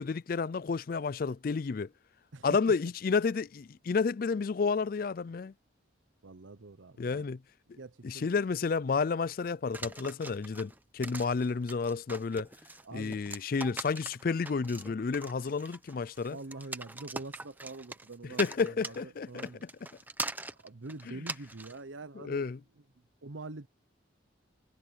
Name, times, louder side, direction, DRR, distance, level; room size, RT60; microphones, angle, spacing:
voice 1, 0.0-1.9 2.4-5.5 7.0-7.4 7.7-7.8 8.0-12.5 12.9-16.4 18.4-19.5 22.2-22.6, left 5 dB, 50° left, 0.4 m, -31 dB
voice 2, 6.2-7.2 7.7-8.3 12.8-13.2 16.3-19.6 20.6-22.5 23.2-23.7, right 3 dB, 85° right, 0.9 m, -45 dB
sound 1, 9.7-21.8, right 2 dB, 10° right, 0.8 m, -42 dB
head